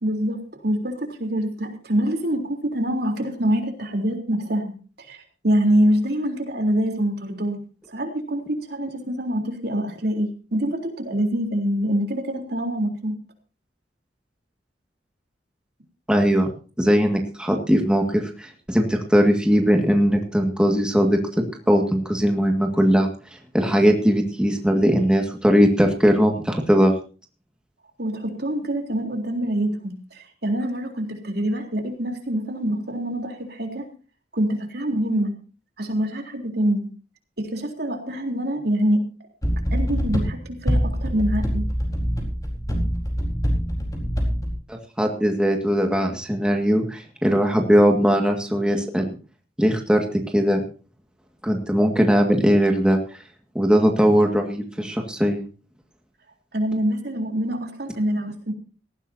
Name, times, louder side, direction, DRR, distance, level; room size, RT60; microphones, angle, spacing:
voice 1, 0.0-7.6 7.9-13.2 28.0-33.9 34.3-35.3 35.8-36.9 37.4-39.1 39.7-41.7 56.5-58.5, equal, 65° right, 3 dB, 3.6 m, -25 dB
voice 2, 16.1-16.5 16.8-23.1 23.5-26.9 44.7-49.2 49.6-50.0 50.3-50.6 51.4-53.0 53.6-55.5, equal, 5° right, 2 dB, 1.9 m, -19 dB
sound 1, 39.4-44.5, equal, 20° left, 4.3 m, -24 dB
18.5 x 15.5 x 2.8 m, 0.36 s
head